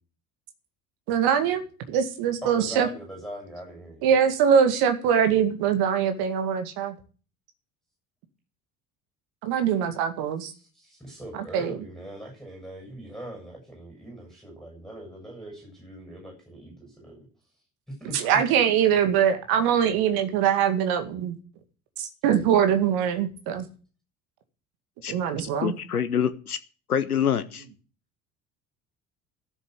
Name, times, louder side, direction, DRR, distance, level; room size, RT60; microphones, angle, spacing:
voice 1, 1.1-1.6 1.9-2.9 4.0-7.0 9.4-10.5 11.5-11.7 18.1-21.4 22.0-23.6 25.1-25.7, right 8 dB, 55° right, 8 dB, 2.2 m, -23 dB
voice 2, 2.4-4.1 10.4-17.3 17.9-18.4, right 1 dB, ahead, 0 dB, 7.2 m, -41 dB
voice 3, 25.6-26.6 26.9-27.6, left 8 dB, 85° left, 13 dB, 0.7 m, -25 dB
12.5 x 7.3 x 8.0 m, 0.38 s
figure-of-eight pair, 60°, 44 cm